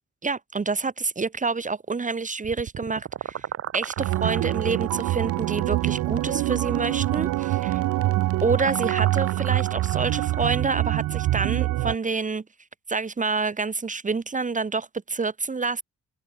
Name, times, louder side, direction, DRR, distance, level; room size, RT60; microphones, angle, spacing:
voice 1, 0.2-3.5 3.7-7.8 8.4-12.4 12.9-15.8, right 4 dB, 25° right, 1.4 m, -28 dB
sound 1, 2.4-10.6, right 9 dB, 50° right, 1.3 m, -38 dB
sound 2, 4.0-11.9, right 16 dB, 85° right, 1.2 m, -25 dB
cardioid pair, 90°, 30 cm